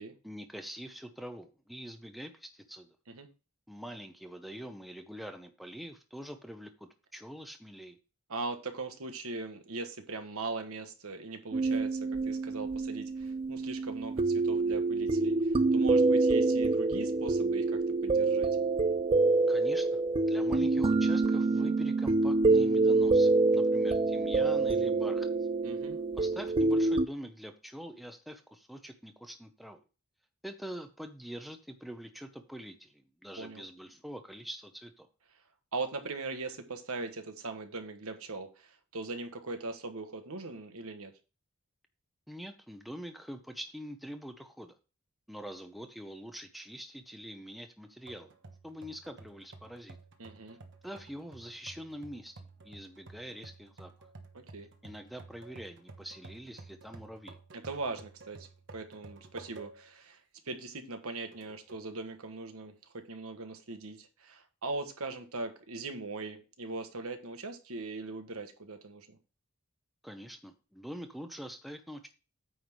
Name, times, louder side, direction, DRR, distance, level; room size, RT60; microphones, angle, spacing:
voice 1, 0.2-2.9 3.7-8.0 19.5-25.3 26.2-29.8 30.4-35.1 42.3-44.7 45.3-48.3 48.6-50.0 50.8-53.9 54.8-57.4 70.0-72.1, equal, ahead, 6 dB, 0.7 m, -44 dB
voice 2, 8.3-18.5 25.6-26.0 33.3-33.6 35.7-41.1 50.2-50.6 54.3-54.7 57.6-60.2 60.4-69.2, right 3 dB, 80° right, 6 dB, 1.3 m, -40 dB
sound 1, 11.5-27.1, right 3 dB, 25° right, 0.3 m, -26 dB
sound 2, 48.1-60.0 60.5-60.6 61.3-61.9, right 3 dB, 55° right, 1.1 m, -52 dB
9.3 x 3.5 x 6.1 m, 0.33 s
head